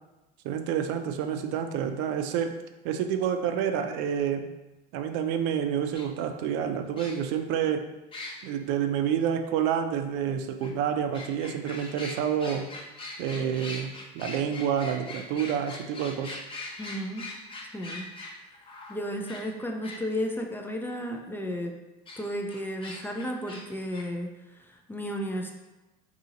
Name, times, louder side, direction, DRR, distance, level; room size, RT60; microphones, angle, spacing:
voice 1, 0.4-2.6 2.8-4.5 4.9-7.9 8.4-12.7 13.2-16.4, right 8 dB, 70° right, 6 dB, 0.4 m, -28 dB
sound 1, 5.9-6.0 7.0-7.4 8.1-8.4 10.6-10.7 11.1-20.0 22.1-22.2 22.5-23.6 23.9-24.0, left 2 dB, 25° left, 0.8 m, -41 dB
voice 2, 16.8-17.3 17.7-18.1 18.9-21.8 22.2-25.5, equal, 10° left, 2 dB, 0.3 m, -33 dB
2.8 x 2.7 x 3.8 m, 1.1 s
supercardioid pair, 105°, 20 cm